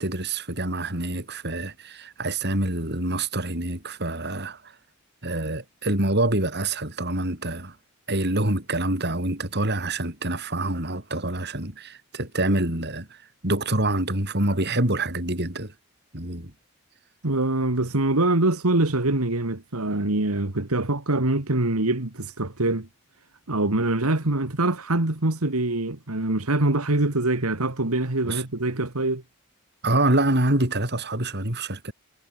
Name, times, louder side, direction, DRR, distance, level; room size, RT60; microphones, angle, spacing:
voice 1, 0.0-4.8 5.2-7.8 8.1-15.7 16.1-16.5 28.3-28.4 29.8-31.9, right 2 dB, 50° right, 5.8 m, -26 dB
voice 2, 17.2-22.9 23.5-29.2, right 2 dB, 90° right, 2.3 m, -24 dB
head